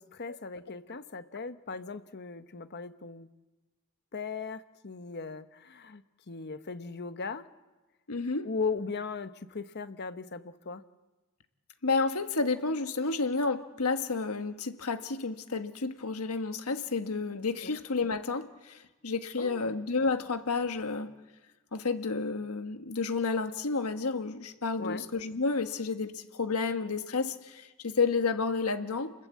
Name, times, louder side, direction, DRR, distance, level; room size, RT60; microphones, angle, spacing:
voice 1, 0.0-3.3 4.1-7.5 8.4-10.8 17.6-17.8 19.3-19.8 24.8-25.1, left 4 dB, 50° left, 11 dB, 1.0 m, -38 dB
voice 2, 8.1-8.5 11.8-21.1 21.7-29.1, left 4 dB, 80° left, 8 dB, 1.4 m, -31 dB
29.0 x 20.5 x 8.4 m, 1.2 s
head